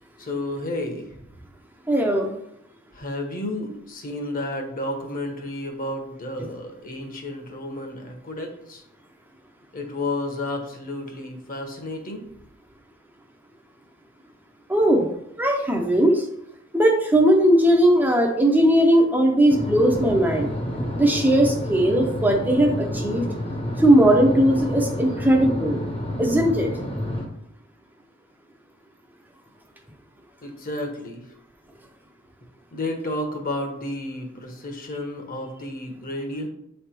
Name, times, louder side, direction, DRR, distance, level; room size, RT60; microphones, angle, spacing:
voice 1, 0.2-1.2 2.9-8.8 9.7-12.3 30.4-31.2 32.7-36.5, left 1 dB, 45° left, 3 dB, 1.2 m, -31 dB
voice 2, 1.9-2.3 14.7-15.1 15.4-16.2 16.7-20.5 21.0-23.3 23.8-25.8 26.2-26.7, right 1 dB, 10° right, 1 dB, 0.6 m, -18 dB
sound 1, 19.5-27.3, equal, 30° left, 1.0 m, -29 dB
7.5 x 3.4 x 4.4 m, 0.77 s
head